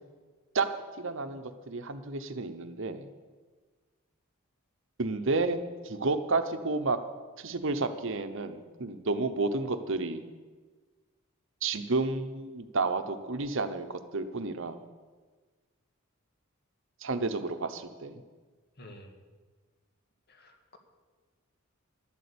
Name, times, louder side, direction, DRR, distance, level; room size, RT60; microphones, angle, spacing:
voice 1, 1.0-3.1 5.0-5.6 5.8-7.0 7.4-10.2 11.6-14.8 17.0-18.2, right 3 dB, 65° right, 9 dB, 0.9 m, -31 dB
voice 2, 18.8-19.1 20.3-20.8, left 1 dB, 50° left, 4 dB, 1.8 m, -50 dB
12.0 x 8.6 x 8.5 m, 1.4 s
head